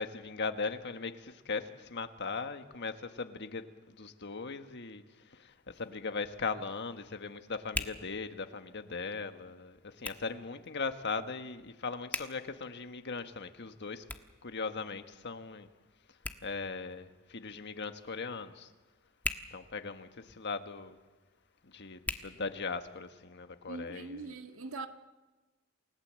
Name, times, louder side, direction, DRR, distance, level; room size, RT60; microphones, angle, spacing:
voice 1, 0.0-14.0 14.4-15.7 16.4-18.7 19.5-21.0 21.6-24.3, left 4 dB, 55° left, 1.5 m, -39 dB
Hands, 5.5-23.1, left 2 dB, 10° left, 1.3 m, -46 dB
voice 2, 23.7-24.9, right 3 dB, 80° right, 1.7 m, -41 dB
29.0 x 18.5 x 7.7 m
head